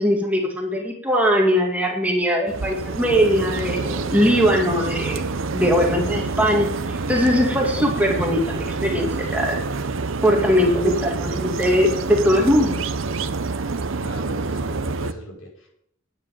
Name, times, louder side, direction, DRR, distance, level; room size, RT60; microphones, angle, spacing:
voice 1, 0.0-5.2 5.5-9.6 10.2-12.8, equal, 5° right, 0 dB, 2.0 m, -20 dB
sound 1, 2.5-15.1, right 3 dB, 75° right, 0.8 m, -27 dB
voice 2, 13.9-15.7, equal, 85° left, -3 dB, 5.8 m, -39 dB
9.9 x 8.9 x 9.0 m, 0.72 s
head